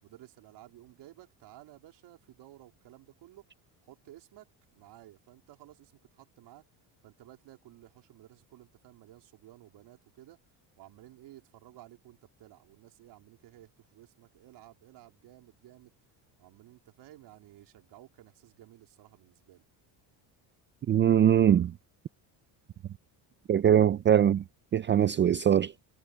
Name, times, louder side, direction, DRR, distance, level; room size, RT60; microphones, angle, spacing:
voice 1, 0.0-3.5 3.8-6.6 7.0-10.4 10.8-15.9 16.4-19.6, right 14 dB, 70° right, 3.8 m, -54 dB
voice 2, 20.9-21.7 23.5-24.4 24.7-25.7, right 9 dB, 30° right, 0.4 m, -22 dB
cardioid pair, 150°, 44 cm